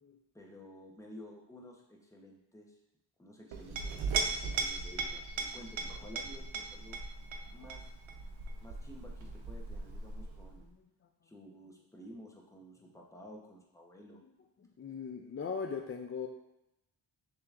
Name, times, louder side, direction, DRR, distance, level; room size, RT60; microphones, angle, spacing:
voice 1, 0.3-2.8 3.2-7.0 7.5-7.9 8.6-10.6 11.2-14.2, equal, 5° left, -1 dB, 0.8 m, -52 dB
Chink clink, 3.5-10.6, right 4 dB, 85° right, 0.7 m, -38 dB
voice 2, 14.8-16.3, left 5 dB, 30° left, 3 dB, 0.4 m, -38 dB
6.6 x 2.9 x 2.4 m, 0.86 s
cardioid pair, 80°, 47 cm